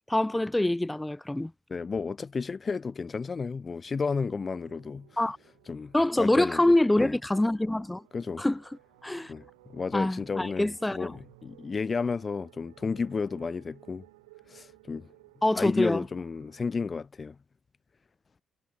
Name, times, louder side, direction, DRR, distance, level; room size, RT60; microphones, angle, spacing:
voice 1, 0.1-1.5 5.2-5.4 5.9-8.0 8.4-8.6 9.0-9.3 9.9-11.1 15.4-16.0, left 1 dB, 10° left, 1.2 m, -25 dB
voice 2, 1.7-5.1 5.7-7.1 8.1-8.4 9.3-14.0 14.5-15.1 15.5-17.4, left 5 dB, 35° left, 0.7 m, -32 dB
sound 1, 4.2-16.9, right 23 dB, 75° right, 5.0 m, -58 dB
figure-of-eight pair, 40°, 0 cm